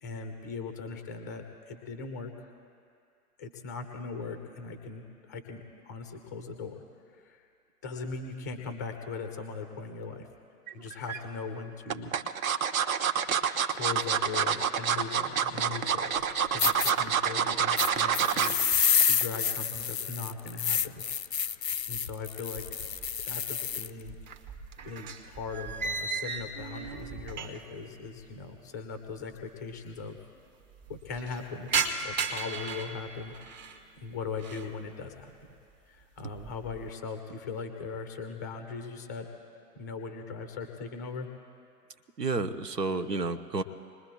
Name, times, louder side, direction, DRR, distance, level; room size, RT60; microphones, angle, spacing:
voice 1, 0.0-2.3 3.4-6.7 7.1-7.4 7.8-10.3 10.7-12.1 13.7-18.8 19.0-21.0 21.9-22.9 23.2-24.2 24.8-30.2 30.9-31.7 32.0-33.6 34.0-35.3 35.9-39.3 39.8-41.3, left 4 dB, 15° left, 5 dB, 0.4 m, -39 dB
sound 1, 10.7-11.2 11.9-18.6 19.0-19.2 19.5-19.6, right 7 dB, 60° right, 0.9 m, -27 dB
sound 2, 16.2-16.3 16.6-16.9 17.8-23.9, left 8 dB, 85° left, 0.6 m, -29 dB
sound 3, 22.6-23.4 23.7-27.8 28.1-28.2 29.1-29.2 29.3-29.4 29.7-30.2 30.6-33.8 34.2-34.8 35.2-35.6 36.0-36.9, right 5 dB, 30° right, 0.8 m, -36 dB
voice 2, 42.2-43.6, right 3 dB, 85° right, 9 dB, 0.8 m, -30 dB
27.0 x 20.5 x 2.2 m, 2.4 s
figure-of-eight pair, 115°, 48 cm